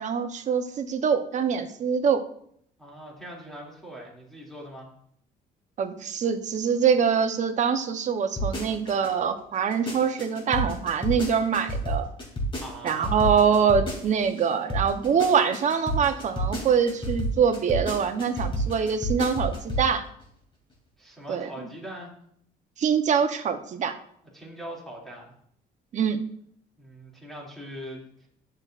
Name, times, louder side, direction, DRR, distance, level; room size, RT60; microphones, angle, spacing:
voice 1, 0.0-2.2 5.8-12.1 12.8-20.0 21.3-21.5 22.8-24.0 25.9-26.2, right 6 dB, 45° right, 8 dB, 0.9 m, -24 dB
voice 2, 2.8-4.9 12.5-13.2 21.0-22.1 24.3-25.3 26.8-28.0, equal, ahead, -4 dB, 2.6 m, -41 dB
sound 1, 8.4-9.1 9.5-14.4 14.7-19.9 20.2-20.3, right 1 dB, 30° left, 2.8 m, -30 dB
10.5 x 6.6 x 2.5 m, 0.66 s
cardioid pair, 110°, 17 cm